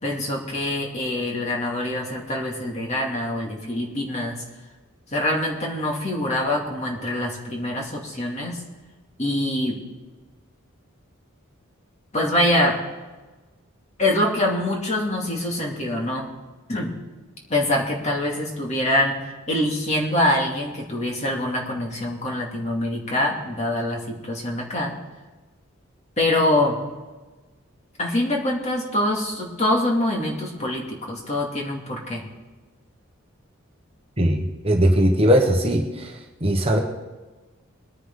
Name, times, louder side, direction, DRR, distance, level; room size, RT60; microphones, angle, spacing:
voice 1, 0.0-4.4 5.1-8.6 9.2-9.8 12.1-12.8 14.0-16.3 16.7-16.9 17.5-19.2 19.5-24.9 26.2-26.8 28.0-32.2, left 1 dB, 30° left, -2 dB, 2.5 m, -24 dB
voice 2, 34.2-36.1 36.4-36.8, equal, 25° right, 2 dB, 1.1 m, -19 dB
21.5 x 10.0 x 3.8 m, 1.2 s
head